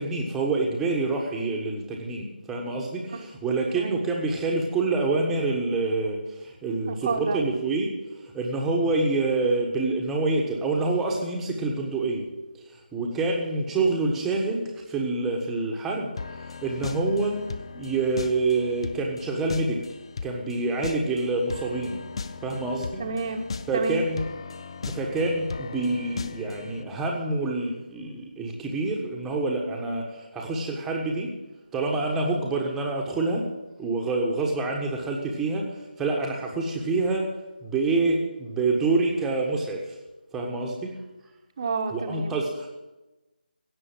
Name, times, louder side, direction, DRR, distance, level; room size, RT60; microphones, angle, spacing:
voice 1, 0.0-7.9 8.2-12.3 12.6-17.4 17.7-19.8 20.2-22.0 22.4-23.0 23.7-24.2 24.9-31.3 31.7-33.4 33.8-37.3 37.6-39.9 40.3-40.9 41.9-42.7, right 3 dB, 5° right, -1 dB, 1.3 m, -27 dB
voice 2, 6.9-7.4 23.0-24.1 41.6-42.4, right 4 dB, 30° right, 6 dB, 1.2 m, -30 dB
sound 1, 16.2-26.8, left 4 dB, 35° left, 0.6 m, -38 dB
16.5 x 6.9 x 8.7 m, 1.1 s
figure-of-eight pair, 160°, 5 cm